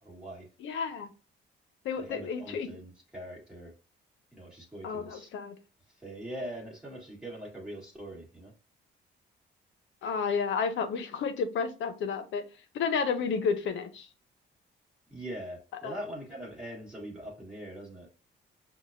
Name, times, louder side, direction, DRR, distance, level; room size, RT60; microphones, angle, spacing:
voice 1, 0.0-0.5 2.0-3.7 4.3-5.3 6.0-8.5 15.1-18.1, right 1 dB, 5° right, 1.6 m, -42 dB
voice 2, 0.6-1.1 1.8-2.7 4.8-5.6 10.0-12.4 12.7-14.1 15.8-15.9, left 5 dB, 75° left, 0.7 m, -31 dB
5.9 x 2.3 x 2.6 m
cardioid pair, 90°, 20 cm